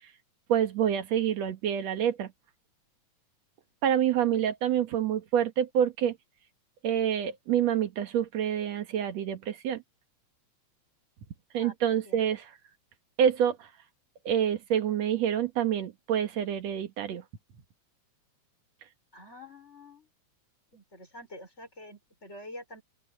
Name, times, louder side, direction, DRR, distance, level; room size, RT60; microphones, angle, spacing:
voice 1, 0.5-2.3 3.8-6.2 6.8-9.8 11.5-12.5 13.2-13.7 14.3-17.2, right 9 dB, 65° right, 2.5 m, -27 dB
voice 2, 19.1-20.1 20.7-22.8, left 1 dB, 20° left, 6.3 m, -47 dB
open air
omnidirectional pair, 3.4 m